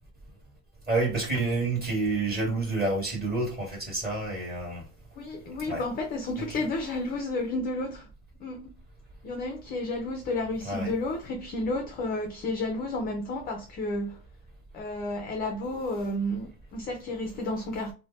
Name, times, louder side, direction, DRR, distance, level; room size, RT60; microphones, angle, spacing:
voice 1, 0.9-4.8 5.6-5.8 10.6-10.9, right 3 dB, 20° right, 1.7 m, -28 dB
voice 2, 5.2-8.1 8.4-8.7 9.2-14.2 14.7-17.9, left 2 dB, 25° left, 0.3 m, -31 dB
3.1 x 2.1 x 3.9 m
supercardioid pair, 140°, 43 cm